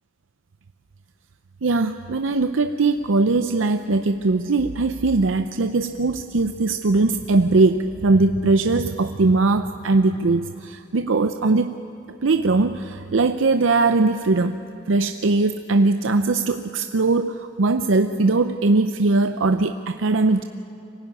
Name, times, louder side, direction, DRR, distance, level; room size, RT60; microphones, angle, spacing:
voice 1, 1.6-11.8 12.2-14.6 14.9-20.4, right 3 dB, 85° right, 8 dB, 0.6 m, -20 dB
24.5 x 16.0 x 9.6 m, 2.6 s
head